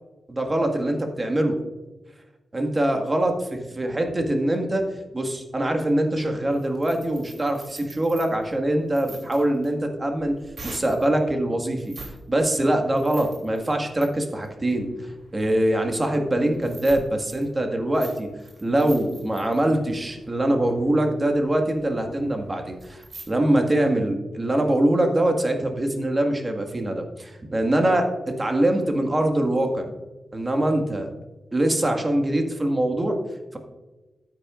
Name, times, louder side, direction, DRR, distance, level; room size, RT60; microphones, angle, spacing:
voice 1, 0.3-1.6 2.5-18.3 18.6-29.9 30.3-31.1 31.5-33.2 33.5-33.6, right 1 dB, 30° right, 4 dB, 1.7 m, -23 dB
sound 1, 6.1-11.1 11.8-12.2 12.5-23.2, right 3 dB, 60° right, 3.1 m, -46 dB
13.0 x 8.6 x 2.5 m, 1.1 s
cardioid pair, 55°, 0 cm